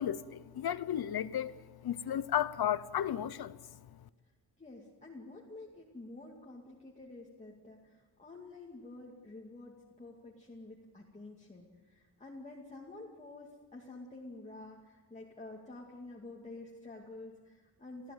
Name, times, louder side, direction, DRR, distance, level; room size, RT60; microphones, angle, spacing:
voice 1, 0.0-1.5 1.8-3.6, left 10 dB, 70° left, 0.9 m, -33 dB
voice 2, 4.6-18.1, left 2 dB, 20° left, 2.4 m, -49 dB
27.5 x 16.0 x 9.2 m
wide cardioid pair, 165°, 39 cm